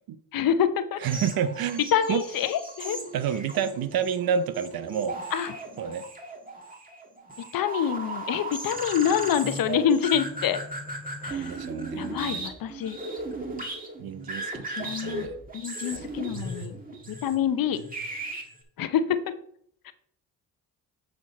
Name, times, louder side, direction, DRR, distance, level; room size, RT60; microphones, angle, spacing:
voice 1, 0.3-1.0 1.9-3.0 5.3-5.5 7.5-10.6 11.2-11.6 11.9-13.0 14.7-15.3 15.5-16.8 17.1-17.8 18.8-19.2 19.8-19.9, left 8 dB, 60° left, 11 dB, 0.8 m, -26 dB
sound 1, 1.0-18.6, right 2 dB, 20° right, 1.8 m, -37 dB
voice 2, 1.0-1.8 2.1-2.2 3.1-5.2 5.8-6.1 11.3-12.4 14.0-15.3 15.9-16.1, right 8 dB, 65° right, 13 dB, 0.8 m, -29 dB
8.7 x 4.4 x 4.2 m, 0.65 s
supercardioid pair, 70°, 39 cm